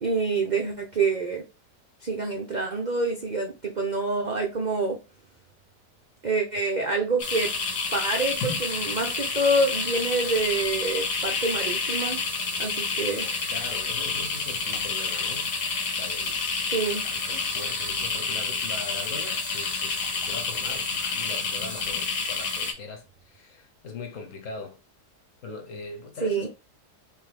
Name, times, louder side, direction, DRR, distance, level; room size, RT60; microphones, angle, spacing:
voice 1, 0.0-1.4 2.0-5.0 6.2-7.5 7.9-12.2 12.6-13.3 16.7-17.0 26.2-26.5, right 3 dB, 55° right, 0.4 m, -27 dB
sound 1, 7.2-22.7, left 4 dB, 85° left, 1.7 m, -29 dB
voice 2, 13.0-15.5 16.0-24.8 25.4-26.5, left 4 dB, 55° left, 1.2 m, -41 dB
3.6 x 3.5 x 3.4 m
omnidirectional pair, 1.8 m